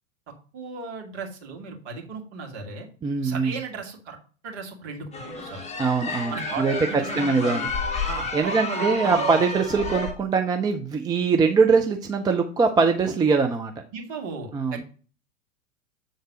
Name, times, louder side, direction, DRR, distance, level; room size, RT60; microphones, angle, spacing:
voice 1, 0.5-2.9 3.2-4.2 4.4-5.6 6.3-7.5 8.0-9.3 13.9-14.8, right 5 dB, 45° right, 1 dB, 2.5 m, -36 dB
voice 2, 3.0-3.6 5.8-6.7 7.2-7.7 8.3-13.7 14.5-14.8, right 4 dB, 10° right, 5 dB, 0.5 m, -22 dB
sound 1, 5.1-10.1, left 2 dB, 15° left, 1.4 m, -30 dB
7.9 x 3.9 x 6.2 m, 0.40 s
figure-of-eight pair, 90°, 39 cm